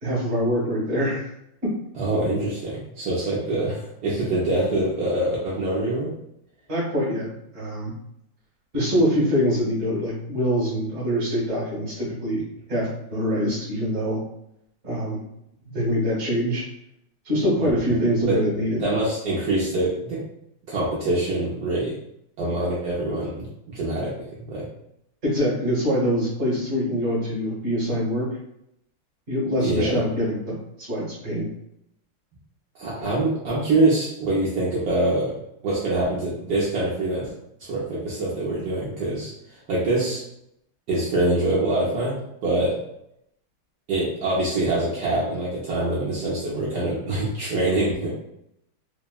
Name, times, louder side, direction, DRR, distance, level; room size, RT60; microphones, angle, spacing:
voice 1, 0.0-1.2 1.6-1.7 6.7-7.9 8.7-12.4 12.7-14.2 14.8-15.2 15.7-16.6 17.2-18.8 25.2-28.3 29.3-31.5, equal, 45° right, -7 dB, 1.2 m, -24 dB
voice 2, 2.0-6.1 17.6-17.7 18.3-18.4 18.7-20.2 20.7-22.0 22.4-24.6 29.6-30.0 32.7-35.3 35.6-37.3 37.6-39.3 39.7-40.2 40.9-42.8 43.9-48.2, right 2 dB, 75° right, -6 dB, 0.9 m, -24 dB
3.4 x 2.0 x 2.2 m, 0.80 s
omnidirectional pair, 2.3 m